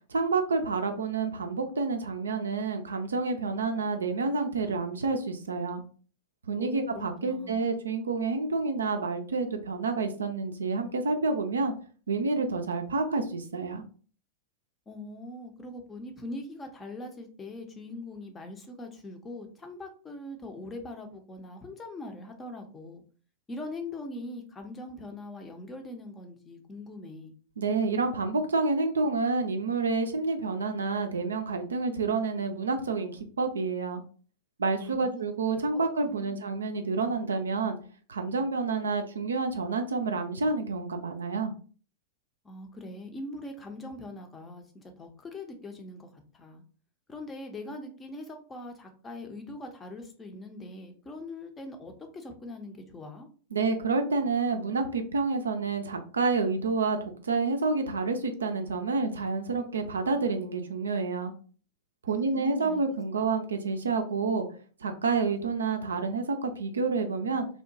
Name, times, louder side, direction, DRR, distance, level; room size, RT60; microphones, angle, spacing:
voice 1, 0.1-5.8 6.5-11.7 12.1-13.8 27.6-34.0 34.6-37.8 38.1-41.5 53.5-61.3 62.0-64.5 64.8-67.5, right 4 dB, 70° right, 6 dB, 0.3 m, -29 dB
voice 2, 6.6-7.6 14.9-23.0 23.5-27.3 34.8-35.2 35.7-35.8 36.1-36.4 42.4-46.1 46.3-46.6 47.1-53.3 62.1-62.8, left 2 dB, 20° left, 4 dB, 0.5 m, -42 dB
2.7 x 2.1 x 2.6 m, 0.41 s
figure-of-eight pair, 90°, 0 cm